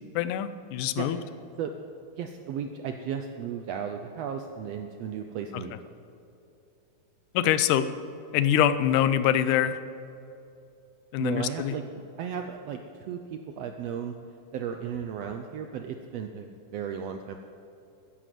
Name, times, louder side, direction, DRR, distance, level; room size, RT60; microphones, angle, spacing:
voice 1, 0.2-1.2 5.5-5.6 7.3-7.9 8.3-9.8 11.1-11.8, left 10 dB, 85° left, 13 dB, 2.2 m, -24 dB
voice 2, 2.1-5.7 11.2-14.1 14.5-17.4, right 7 dB, 85° right, 6 dB, 1.5 m, -35 dB
14.0 x 10.5 x 7.6 m, 2.8 s
omnidirectional pair, 3.6 m